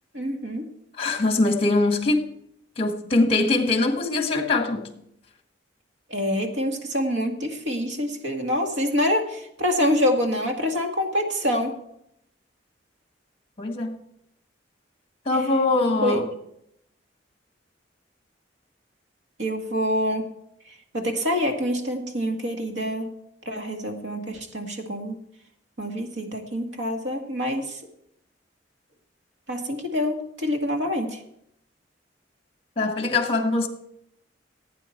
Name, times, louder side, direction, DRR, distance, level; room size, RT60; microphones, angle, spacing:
voice 1, 0.1-0.7 6.1-11.7 16.0-16.2 19.4-20.3 20.9-23.1 23.5-25.2 25.8-27.8 29.5-31.2, equal, 75° right, 2.0 m, -26 dB
voice 2, 1.0-2.3 2.8-4.9 13.6-14.0 15.3-16.3 32.8-33.7, left 2 dB, 30° left, 1.7 m, -22 dB
15.5 x 9.1 x 4.5 m
head